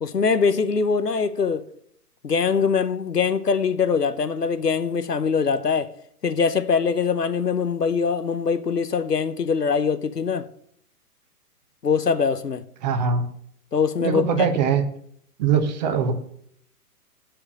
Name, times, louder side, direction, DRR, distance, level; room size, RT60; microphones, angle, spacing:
voice 1, 0.0-1.6 2.2-5.9 6.2-10.5 11.8-12.6 13.7-14.5, left 5 dB, 75° left, 1.0 m, -22 dB
voice 2, 12.8-13.2 14.0-14.8 15.4-16.1, right 6 dB, 25° right, 1.1 m, -21 dB
12.5 x 4.9 x 7.3 m
figure-of-eight pair, 120°, 48 cm